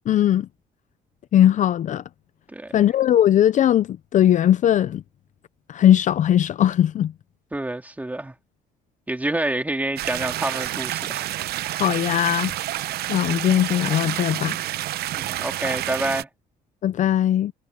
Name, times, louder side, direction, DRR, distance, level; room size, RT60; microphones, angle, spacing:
voice 1, 0.1-0.5 1.3-2.0 2.7-5.0 5.7-7.1 11.8-12.5 13.1-14.6 16.8-17.5, left 11 dB, 50° left, 0.5 m, -19 dB
voice 2, 2.5-2.9 7.5-8.3 9.1-11.3 15.2-16.3, right 1 dB, 10° right, 3.1 m, -28 dB
sound 1, 10.0-16.2, right 14 dB, 70° right, 0.7 m, -29 dB
cardioid pair, 110°, 17 cm